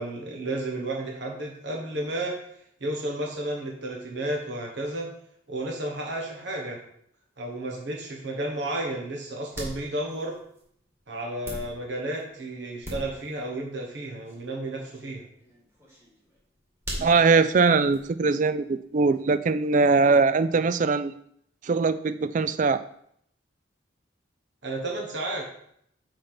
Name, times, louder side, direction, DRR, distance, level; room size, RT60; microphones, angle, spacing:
voice 1, 0.0-2.4 2.8-5.1 5.5-6.8 7.4-10.3 11.1-15.2 24.6-25.5, right 1 dB, 65° right, -1 dB, 1.4 m, -32 dB
sound 1, 9.5-12.5 12.8-13.4 13.8-14.0 14.3-18.1 18.6-19.7, equal, 15° right, 2.2 m, -40 dB
voice 2, 17.0-21.1 21.6-22.8, right 4 dB, 45° right, 13 dB, 0.4 m, -21 dB
5.6 x 5.0 x 5.9 m, 0.69 s
head